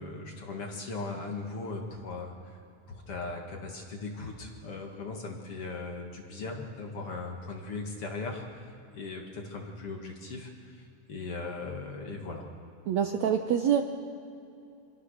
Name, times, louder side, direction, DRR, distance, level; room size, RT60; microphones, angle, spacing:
voice 1, 0.0-2.6 2.9-12.4, left 3 dB, 45° left, 1 dB, 2.5 m, -39 dB
voice 2, 12.9-13.8, right 9 dB, 75° right, 5 dB, 1.7 m, -25 dB
26.0 x 22.0 x 6.6 m, 2.7 s
omnidirectional pair, 4.2 m